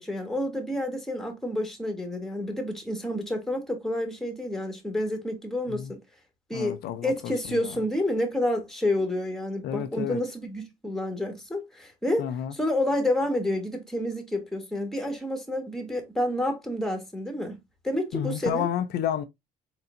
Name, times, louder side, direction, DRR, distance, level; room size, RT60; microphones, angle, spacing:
voice 1, 0.0-6.0 6.5-12.3 12.5-17.6 17.8-18.7, left 1 dB, ahead, 1.5 m, -29 dB
voice 2, 6.5-7.7 9.6-10.2 12.2-12.5 18.1-19.2, left 10 dB, 75° left, 0.5 m, -31 dB
4.3 x 3.9 x 2.6 m
cardioid pair, 110°, 17 cm